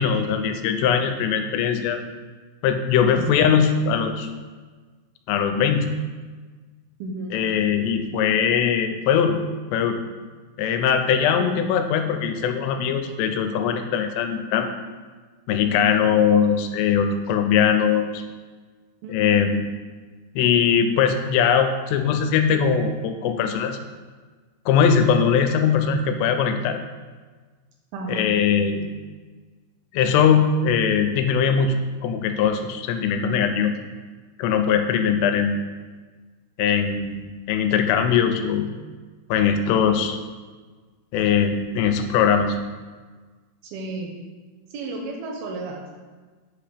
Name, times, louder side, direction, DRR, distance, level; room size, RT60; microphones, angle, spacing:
voice 1, 0.0-2.0 2.6-4.3 5.3-5.9 7.3-9.4 9.7-10.0 10.6-14.7 15.5-18.2 19.1-19.5 20.4-23.8 24.7-26.8 28.1-28.9 29.9-33.7 34.4-35.6 36.6-38.7 39.3-40.2 41.1-42.6, left 7 dB, 85° left, 6 dB, 2.7 m, -21 dB
voice 2, 3.2-3.5 7.0-7.4 11.4-11.6 15.6-15.9 19.0-19.3 27.9-28.3 43.6-44.2 44.7-45.9, right 2 dB, 85° right, 1 dB, 2.2 m, -32 dB
7.9 x 2.9 x 4.9 m, 1.4 s
omnidirectional pair, 4.8 m